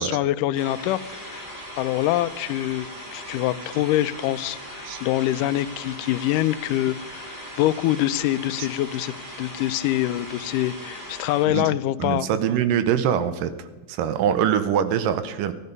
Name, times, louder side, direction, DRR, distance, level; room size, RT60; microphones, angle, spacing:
voice 1, 0.0-12.3, left 14 dB, 80° left, 14 dB, 2.0 m, -25 dB
sound 1, 0.5-11.4, equal, 15° right, 2.4 m, -39 dB
voice 2, 12.0-15.5, right 9 dB, 80° right, 12 dB, 2.4 m, -23 dB
13.5 x 12.5 x 5.4 m, 1.2 s
omnidirectional pair, 3.9 m